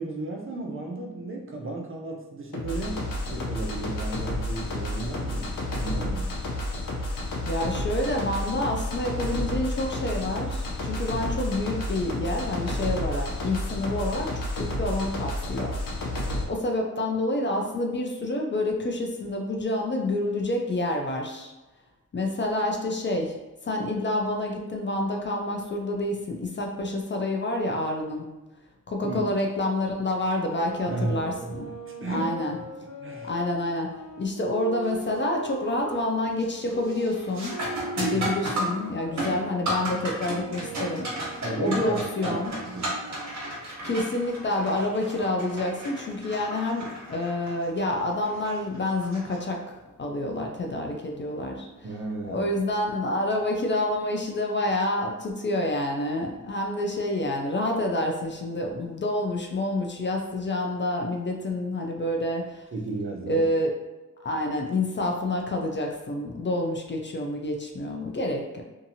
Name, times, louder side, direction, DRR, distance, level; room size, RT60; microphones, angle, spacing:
voice 1, 0.0-6.4 29.0-29.2 30.9-32.3 33.0-33.3 38.1-38.3 41.4-43.0 51.8-52.5 62.7-63.5, right 2 dB, 40° right, 1 dB, 0.5 m, -34 dB
sound 1, 2.5-16.4, left 1 dB, 75° left, 0.7 m, -31 dB
voice 2, 7.5-15.7 16.5-21.5 22.1-23.3 23.6-28.3 28.9-31.7 32.1-32.6 33.3-33.9 34.2-37.5 38.0-42.5 43.8-49.6 50.0-51.7 52.2-62.7 63.3-63.7 64.2-68.6, left 1 dB, 35° left, 1 dB, 0.4 m, -28 dB
sound 2, 30.5-36.1 36.7-42.3, right 1 dB, 20° left, 1.4 m, -40 dB
sound 3, 34.8-35.2 35.6-36.0 36.4-49.9 52.4-52.5 53.3-53.6, right 1 dB, 55° right, 1.1 m, -34 dB
2.7 x 2.5 x 2.7 m, 1.1 s
wide cardioid pair, 90°, 33 cm